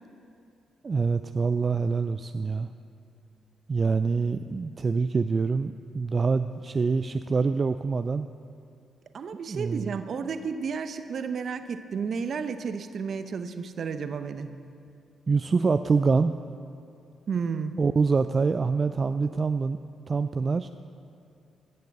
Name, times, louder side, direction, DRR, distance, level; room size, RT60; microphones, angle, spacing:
voice 1, 0.8-2.7 3.7-8.3 9.5-10.0 15.3-16.3 17.8-19.8 20.1-20.7, right 4 dB, 40° right, 10 dB, 0.4 m, -25 dB
voice 2, 9.1-14.6 17.3-17.7, right 6 dB, 60° right, 10 dB, 0.8 m, -32 dB
16.0 x 6.7 x 6.7 m, 2.5 s
supercardioid pair, 50°, 0 cm